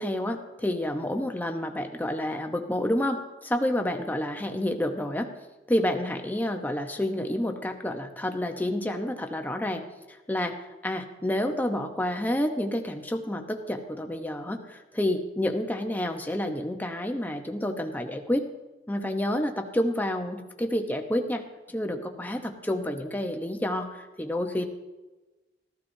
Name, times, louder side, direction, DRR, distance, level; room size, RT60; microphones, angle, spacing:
voice 1, 0.0-5.3 5.7-10.6 10.8-18.5 18.9-21.4 21.7-24.7, left 1 dB, 10° left, 5 dB, 0.8 m, -29 dB
15.0 x 14.0 x 2.7 m, 1.1 s
head